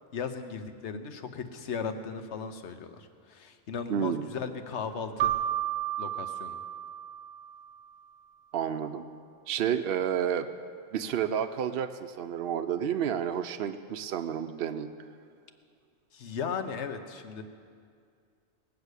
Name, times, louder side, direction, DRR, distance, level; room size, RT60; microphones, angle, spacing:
voice 1, 0.1-5.3 6.0-6.6 16.1-17.4, left 6 dB, 65° left, 8 dB, 1.2 m, -36 dB
voice 2, 3.9-4.3 8.5-9.0 9.5-10.5 10.9-14.9, right 9 dB, 60° right, 7 dB, 0.7 m, -30 dB
Keyboard (musical), 5.2-7.7, right 12 dB, 85° right, 1.1 m, -32 dB
19.5 x 6.8 x 8.1 m, 2.2 s
omnidirectional pair, 1.3 m